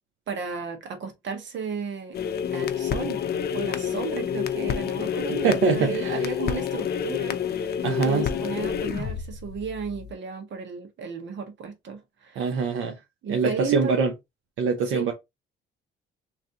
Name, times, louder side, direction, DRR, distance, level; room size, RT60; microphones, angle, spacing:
voice 1, 0.3-2.2 2.5-3.2 3.5-12.4 13.2-14.0 14.9-15.1, right 6 dB, 65° right, 1.3 m, -34 dB
sound 1, 2.1-10.1, left 8 dB, 55° left, 0.6 m, -28 dB
voice 2, 5.4-6.2 7.8-8.3 12.4-13.0 13.3-14.1 14.6-15.1, right 5 dB, 85° right, 0.8 m, -24 dB
3.2 x 2.7 x 3.8 m
cardioid pair, 90°, 20 cm